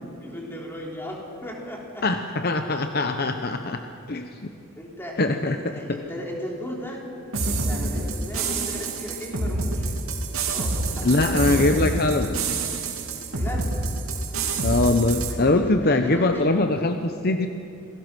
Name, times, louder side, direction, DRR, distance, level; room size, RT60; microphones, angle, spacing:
voice 1, 0.2-2.0 4.8-7.0 7.4-9.9 10.5-11.8 13.3-13.7 15.3-16.5, left 1 dB, 10° left, -2 dB, 3.8 m, -36 dB
voice 2, 2.0-3.8 4.1-4.5 5.2-5.7 11.0-12.4 14.6-17.5, left 2 dB, 45° left, 6 dB, 0.9 m, -22 dB
sound 1, 7.3-15.3, right 2 dB, 80° right, 2.5 m, -27 dB
27.5 x 19.0 x 6.2 m, 2.6 s
head